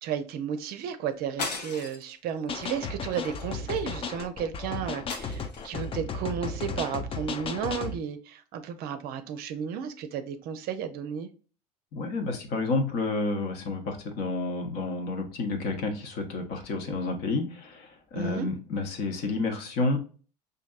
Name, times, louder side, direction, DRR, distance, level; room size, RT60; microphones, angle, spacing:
voice 1, 0.0-11.3 18.1-18.5, right 8 dB, 50° right, 0.6 m, -33 dB
sound 1, 1.4-2.1 2.6-2.8 3.1-4.1 5.1-5.9, left 4 dB, 80° left, 0.8 m, -37 dB
sound 2, 2.5-8.0, left 4 dB, 25° left, 0.5 m, -34 dB
voice 2, 11.9-20.0, left 3 dB, 50° left, 1.0 m, -30 dB
5.1 x 2.6 x 2.4 m
hypercardioid pair, 70°, 21 cm